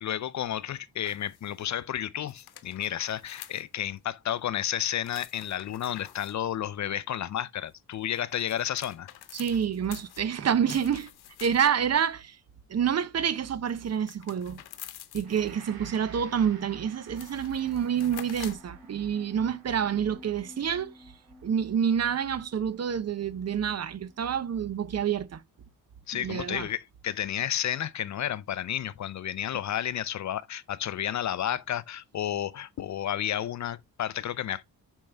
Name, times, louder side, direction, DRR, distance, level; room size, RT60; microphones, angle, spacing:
voice 1, 0.0-9.1 26.1-34.6, left 10 dB, 50° left, 0.5 m, -31 dB
sound 1, 1.1-1.7 2.3-4.0 5.0-6.4 7.9-11.9 13.7-15.7 16.6-16.7 17.0-18.7, left 13 dB, 90° left, 0.9 m, -48 dB
voice 2, 9.3-11.1 11.4-12.4 12.7-14.6 15.1-20.9 21.4-25.4 26.2-26.7, right 8 dB, 45° right, 0.7 m, -28 dB
Gong, 15.2-24.4, right 5 dB, 70° right, 2.7 m, -55 dB
sound 2, 17.3-24.8, left 2 dB, 10° left, 1.6 m, -56 dB
7.1 x 5.4 x 3.3 m
cardioid pair, 120°, 37 cm